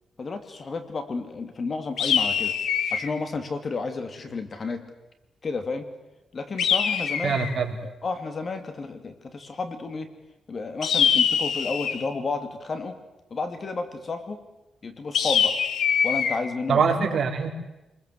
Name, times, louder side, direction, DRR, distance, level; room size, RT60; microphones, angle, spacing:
voice 1, 0.2-2.5 2.9-4.8 5.4-5.9 6.3-7.4 8.0-10.1 10.5-13.0 13.3-14.4 14.8-15.6 16.0-16.8, left 4 dB, 35° left, 8 dB, 2.6 m, -31 dB
sound 1, 2.0-3.1 6.6-7.6 10.8-12.1 15.1-16.4, left 7 dB, 75° left, 2.1 m, -23 dB
voice 2, 7.2-7.8 16.7-17.5, right 5 dB, 50° right, 2 dB, 4.4 m, -23 dB
27.5 x 21.0 x 8.1 m, 0.99 s
cardioid pair, 130°, 0 cm